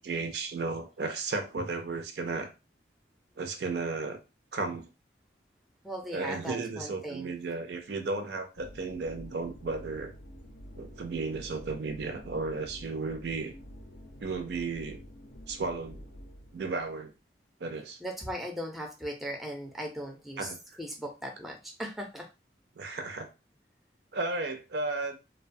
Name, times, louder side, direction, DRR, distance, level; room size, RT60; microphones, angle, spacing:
voice 1, 0.0-2.5 3.4-4.2 4.5-4.9 6.1-10.1 10.8-13.5 14.2-15.0 15.5-16.1 16.5-17.1 17.6-18.0 20.4-20.6 22.8-23.3 24.1-25.2, right 3 dB, 65° right, 0.4 m, -34 dB
voice 2, 5.8-7.3 18.0-20.5 20.8-22.3, equal, ahead, 0.4 m, -38 dB
sound 1, 8.6-16.9, equal, 60° left, 0.4 m, -48 dB
2.6 x 2.1 x 2.5 m
head